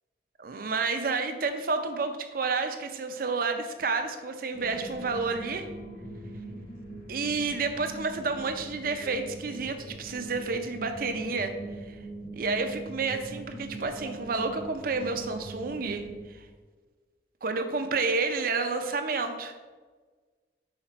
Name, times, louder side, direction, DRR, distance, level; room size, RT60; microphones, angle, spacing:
voice 1, 0.4-5.7 7.1-11.5 11.9-12.0 12.3-16.0 17.4-19.5, right 4 dB, 55° right, 7 dB, 0.6 m, -30 dB
sound 1, 4.5-16.2, right 2 dB, 90° left, 2.0 m, -42 dB
5.7 x 4.9 x 4.3 m, 1.4 s
head